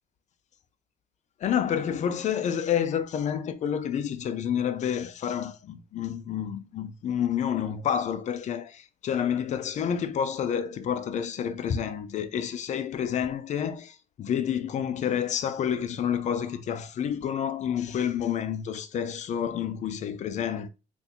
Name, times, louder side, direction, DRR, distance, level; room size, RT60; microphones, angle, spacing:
voice 1, 1.4-20.7, left 8 dB, 45° left, 0.4 m, -29 dB
3.6 x 2.6 x 2.8 m
cardioid pair, 110°, 17 cm